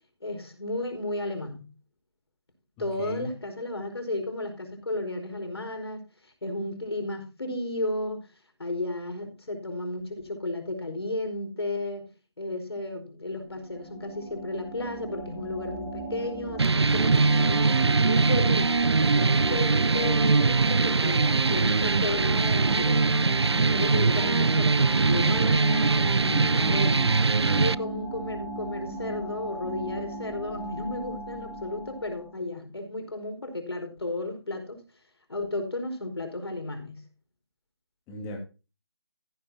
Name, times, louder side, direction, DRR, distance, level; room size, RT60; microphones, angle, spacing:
voice 1, 0.2-1.7 2.8-8.3 8.6-12.1 12.4-17.8 18.0-18.8 19.1-23.2 23.6-26.3 26.7-27.2 27.5-34.8 35.3-37.0, left 2 dB, 70° left, 4.7 m, -33 dB
voice 2, 2.8-3.3 26.2-26.9 38.1-38.4, right 1 dB, 15° left, 2.9 m, -34 dB
sound 1, 13.4-32.4, right 1 dB, 30° right, 5.8 m, -37 dB
sound 2, 16.6-27.7, right 4 dB, 75° right, 0.6 m, -22 dB
15.0 x 10.5 x 2.8 m
figure-of-eight pair, 155°, 14 cm